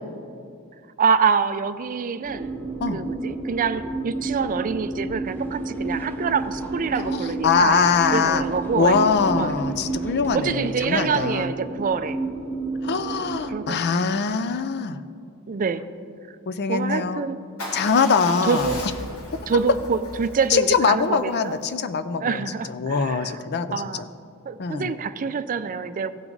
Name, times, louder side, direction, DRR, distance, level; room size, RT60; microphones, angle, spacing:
voice 1, 1.0-2.5 2.9-7.8 8.1-8.9 9.4-9.5 10.3-12.2 12.8-13.8 15.5-15.8 16.7-17.4 18.4-18.8 19.5-21.5 22.2-23.4 23.7-24.0 24.5-26.1, right 5 dB, 40° right, 11 dB, 0.4 m, -26 dB
sound 1, 2.2-13.7, right 3 dB, 20° right, 2.0 m, -31 dB
sound 2, 5.3-10.3, equal, 10° left, 0.9 m, -45 dB
voice 2, 7.0-8.4 8.8-11.5 12.8-15.0 16.5-17.3 17.7-18.9 20.5-24.1 24.6-24.9, left 5 dB, 50° left, 12 dB, 0.5 m, -23 dB
Motorcycle / Engine starting / Idling, 17.6-21.7, left 1 dB, 70° left, 1.6 m, -37 dB
15.5 x 6.0 x 3.9 m, 2.4 s
head